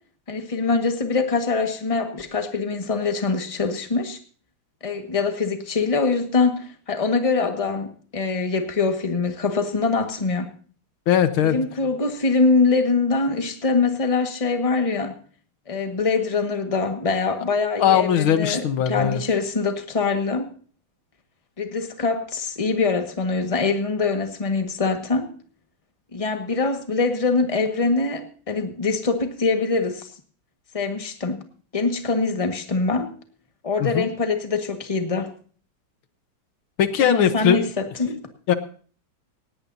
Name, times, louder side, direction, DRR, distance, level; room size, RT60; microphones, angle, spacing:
voice 1, 0.3-4.2 4.8-10.5 11.4-15.2 15.7-20.5 21.6-25.3 26.1-30.1 30.7-31.4 31.7-33.1 33.6-35.3 37.0-38.2, left 4 dB, 20° left, 6 dB, 1.5 m, -23 dB
voice 2, 11.1-11.6 17.8-19.2 33.8-34.1 36.8-37.6 38.5-38.6, left 9 dB, 75° left, 10 dB, 1.9 m, -19 dB
18.5 x 17.5 x 2.7 m, 0.43 s
omnidirectional pair, 2.3 m